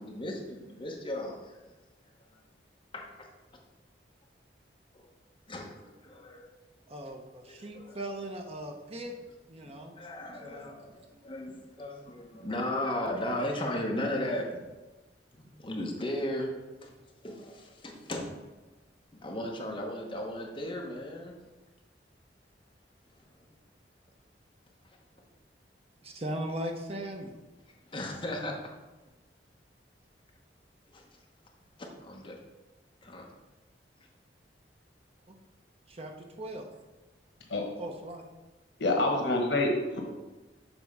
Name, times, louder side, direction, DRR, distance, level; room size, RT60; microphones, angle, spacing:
voice 1, 0.0-1.6 2.9-3.3 4.9-5.1 5.5-6.5 7.5-8.0 9.7-14.6 15.3-16.5 16.8-17.0 17.2-18.5 19.1-21.4 23.3-23.4 27.7-28.6 30.9-31.1 31.8-32.3 33.0-33.2, left 1 dB, 30° left, 0 dB, 1.0 m, -36 dB
voice 2, 6.9-9.1 9.5-9.9 10.4-10.7 26.0-27.3 35.9-36.7 37.8-38.2, right 1 dB, 35° right, 3 dB, 0.8 m, -38 dB
voice 3, 38.8-40.0, left 2 dB, 90° left, 2 dB, 1.3 m, -27 dB
7.0 x 3.5 x 5.5 m, 1.2 s
head